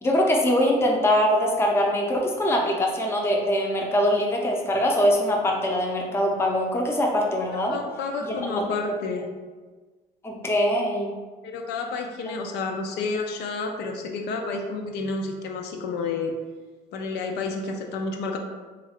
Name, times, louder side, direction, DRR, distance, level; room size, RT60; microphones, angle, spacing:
voice 1, 0.0-7.8 8.2-8.6 10.2-11.1 12.3-12.4, equal, 15° left, -1 dB, 0.6 m, -23 dB
voice 2, 7.7-9.3 11.4-16.3 16.9-18.4, left 3 dB, 75° left, 3 dB, 0.4 m, -30 dB
3.1 x 2.4 x 3.4 m, 1.4 s
cardioid pair, 110°, 17 cm